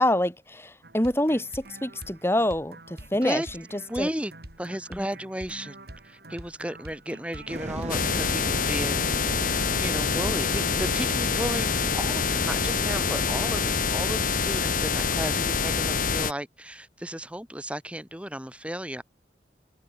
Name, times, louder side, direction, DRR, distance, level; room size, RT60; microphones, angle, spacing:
voice 1, 0.0-3.4 3.7-4.1 4.9-5.0, left 1 dB, 15° left, 4.8 m, -26 dB
sound 1, 0.8-14.5, right 1 dB, 60° right, 4.4 m, -45 dB
voice 2, 3.9-4.3 4.6-5.8 6.0-19.0, equal, 5° right, 3.6 m, -34 dB
sound 2, 7.5-13.7, right 1 dB, 40° right, 7.0 m, -37 dB
sound 3, 7.9-16.3, left 6 dB, 50° left, 1.2 m, -26 dB
head